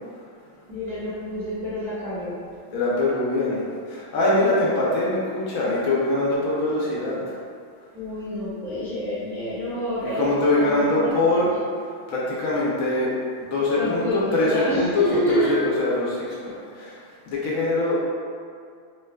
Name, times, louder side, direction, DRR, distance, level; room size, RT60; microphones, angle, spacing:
voice 1, 0.7-2.4 7.9-10.3 10.6-11.1 11.4-11.5 13.8-15.5, equal, ahead, -11 dB, 0.9 m, -28 dB
voice 2, 2.7-7.3 10.0-11.5 12.1-13.1 13.4-17.0 17.3-18.0, left 2 dB, 75° left, -6 dB, 1.1 m, -23 dB
2.9 x 2.3 x 3.2 m, 2.3 s
omnidirectional pair, 1.5 m